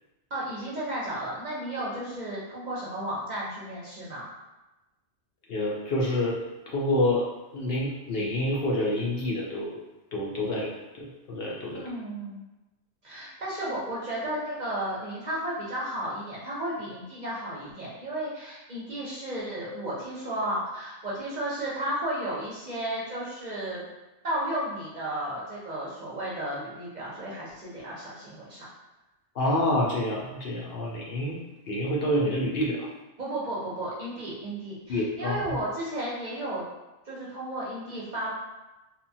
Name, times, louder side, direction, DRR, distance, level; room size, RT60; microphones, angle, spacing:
voice 1, 0.3-4.2 11.7-12.4 13.0-23.9 24.2-28.7 33.2-36.6 37.0-38.3, right 1 dB, 50° right, -7 dB, 0.6 m, -33 dB
voice 2, 5.5-9.7 10.1-11.8 29.3-31.4 31.7-32.9 34.9-35.5, left 1 dB, 65° left, -3 dB, 0.7 m, -28 dB
2.8 x 2.1 x 2.6 m, 1.0 s
omnidirectional pair, 1.2 m